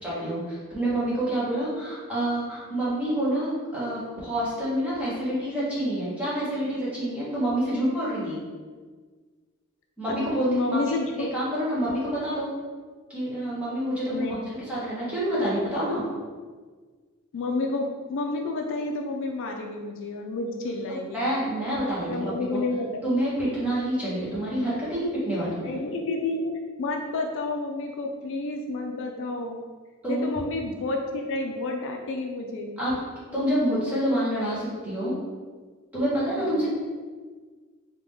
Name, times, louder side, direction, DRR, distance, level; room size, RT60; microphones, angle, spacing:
voice 1, 0.0-8.4 10.0-10.8 11.2-12.5 13.1-14.3 14.7-16.1 20.9-22.6 23.0-25.8 30.0-30.3 32.8-33.0 33.3-35.1 35.9-36.7, right 1 dB, 5° right, -10 dB, 1.5 m, -27 dB
voice 2, 10.5-11.3 14.1-14.7 17.3-21.2 22.1-22.9 25.6-29.6 30.1-32.8 36.4-36.6, left 2 dB, 60° left, 2 dB, 0.4 m, -30 dB
3.7 x 2.9 x 3.5 m, 1.5 s
head